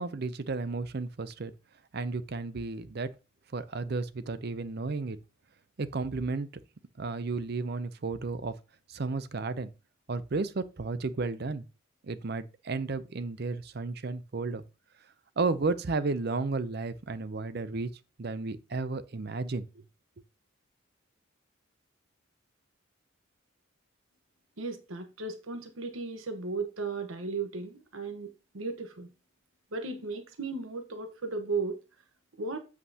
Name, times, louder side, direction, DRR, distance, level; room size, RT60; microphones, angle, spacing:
voice 1, 0.0-1.5 1.9-3.1 3.5-5.2 5.8-6.5 7.0-8.5 8.9-9.7 10.1-11.6 12.0-14.6 15.4-17.9 18.2-19.7, right 3 dB, 50° right, 0.6 m, -33 dB
voice 2, 24.6-29.1 29.7-31.8 32.4-32.6, right 3 dB, 80° right, 1.2 m, -35 dB
8.2 x 7.5 x 2.8 m
head